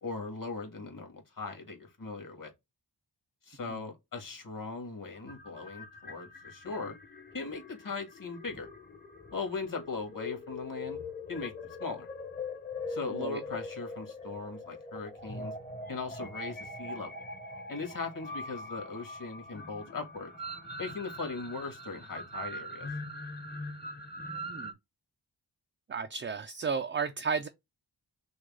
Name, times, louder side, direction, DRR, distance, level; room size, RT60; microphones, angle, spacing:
voice 1, 0.0-2.5 3.4-6.9 7.3-8.7 9.3-11.0 11.3-11.5 11.8-12.1 12.9-15.5 15.9-17.2 17.7-20.3 20.8-22.9, left 4 dB, 50° left, 1.9 m, -39 dB
sound 1, 5.2-24.7, left 2 dB, 25° left, 0.9 m, -42 dB
voice 2, 13.1-13.4 24.5-24.7 25.9-27.5, right 5 dB, 30° right, 0.4 m, -33 dB
6.3 x 2.3 x 3.5 m
wide cardioid pair, 130°, 41 cm